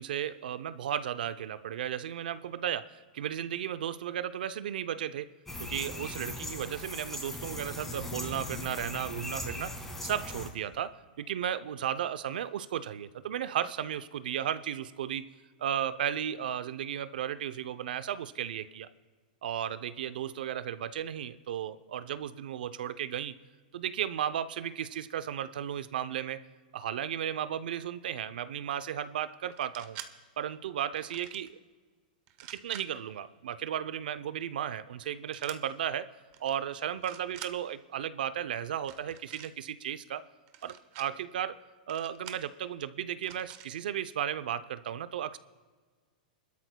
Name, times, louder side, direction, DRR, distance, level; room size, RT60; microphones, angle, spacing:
voice 1, 0.0-5.3 5.6-15.3 15.6-18.9 19.4-23.3 23.7-26.4 26.7-30.0 30.4-31.6 32.5-36.1 36.4-40.3 40.6-41.6 41.9-45.4, right 10 dB, 75° right, 14 dB, 0.6 m, -34 dB
sound 1, 5.5-10.5, left 2 dB, 5° left, 1.8 m, -39 dB
sound 2, 29.5-30.1 30.9-31.5 32.3-32.9 35.3-35.6 36.3-36.5 36.9-37.5 38.8-39.5 40.5-41.1 41.9-42.5 43.2-43.7, right 12 dB, 40° right, 0.9 m, -47 dB
27.5 x 12.5 x 2.2 m, 1.5 s
supercardioid pair, 150°, 5 cm